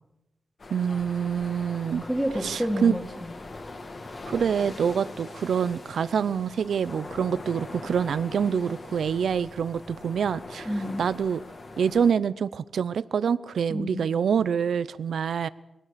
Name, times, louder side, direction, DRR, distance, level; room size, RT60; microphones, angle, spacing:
sound 1, 0.6-12.1, left 2 dB, 40° left, 1.9 m, -41 dB
voice 1, 0.7-2.0 2.4-2.9 4.3-10.7 11.0-11.4 11.8-15.5, right 7 dB, 85° right, 17 dB, 0.6 m, -26 dB
voice 2, 2.0-3.4 10.6-11.0 13.7-14.1, equal, ahead, -4 dB, 2.2 m, -29 dB
22.5 x 17.5 x 6.8 m, 0.96 s
wide cardioid pair, 155°, 0 cm